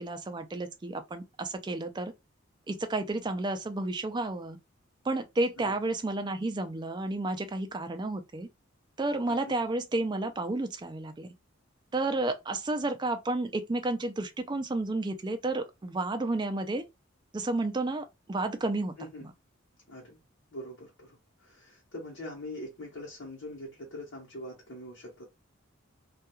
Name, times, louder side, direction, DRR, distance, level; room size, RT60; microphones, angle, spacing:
voice 1, 0.0-2.1 2.7-4.6 5.1-8.5 9.0-11.3 11.9-16.8 17.3-18.9, right 2 dB, 20° right, 0.3 m, -31 dB
voice 2, 19.0-19.3 19.9-20.2 20.5-25.2, left 1 dB, 60° left, 0.9 m, -43 dB
2.3 x 2.2 x 2.9 m
head